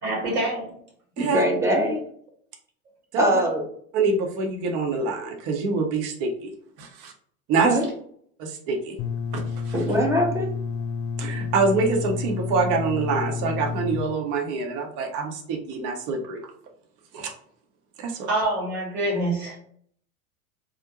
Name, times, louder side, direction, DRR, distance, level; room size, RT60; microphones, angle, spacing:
voice 1, 0.0-0.8 18.3-19.6, right 1 dB, 80° right, -2 dB, 1.4 m, -26 dB
voice 2, 1.2-2.0 3.2-3.6 7.6-7.9 9.7-10.5, right 1 dB, 5° right, -1 dB, 0.5 m, -22 dB
voice 3, 3.9-6.5 6.8-7.1 7.5-7.7 8.4-9.0 9.3-9.7 11.2-16.4 17.1-17.3 18.0-18.3, right 4 dB, 45° right, 1 dB, 0.7 m, -25 dB
sound 1, 9.0-14.0, left 5 dB, 40° left, 0.5 m, -30 dB
2.4 x 2.1 x 2.8 m, 0.62 s
hypercardioid pair, 85°, 45 cm